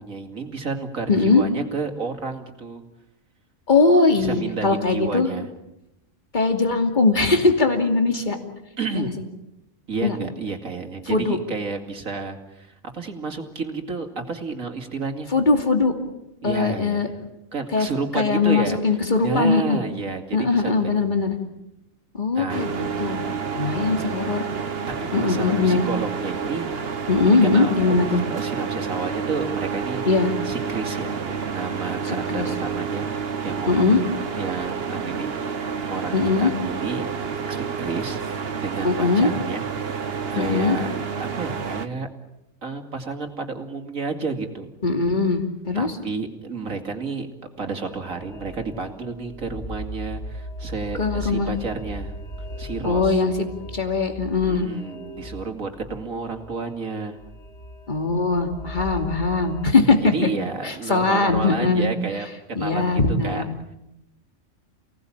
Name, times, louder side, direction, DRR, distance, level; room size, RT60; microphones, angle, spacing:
voice 1, 0.0-2.8 4.1-5.5 8.8-9.1 9.9-15.3 16.4-17.2 17.5-18.8 19.2-21.0 22.3-22.7 23.0-23.2 25.0-26.7 27.3-27.9 28.3-30.0 30.4-33.9 34.3-37.1 37.5-40.0 40.3-40.9 41.2-42.1 42.6-44.7 45.7-47.3 47.6-52.1 52.6-53.2 54.4-57.2 60.0-63.8, right 4 dB, 85° right, 5 dB, 3.0 m, -31 dB
voice 2, 1.1-1.4 3.7-5.3 6.3-8.4 8.9-9.1 10.0-10.2 11.1-11.4 15.3-15.9 16.4-17.1 17.7-17.9 18.1-19.8 20.3-21.4 22.1-23.2 23.5-24.4 25.1-25.8 27.1-28.2 30.1-30.3 32.3-32.5 33.7-34.0 36.1-36.5 38.8-39.3 40.4-40.8 44.8-45.9 51.0-51.5 52.8-53.3 53.7-54.7 57.9-60.3 60.6-61.9 62.6-63.5, left 3 dB, 35° left, 5 dB, 2.8 m, -20 dB
sound 1, 22.5-41.9, right 6 dB, 50° right, 1.4 m, -29 dB
sound 2, 47.7-59.7, left 1 dB, 60° left, 2.3 m, -37 dB
29.0 x 18.5 x 8.8 m, 0.88 s
omnidirectional pair, 1.4 m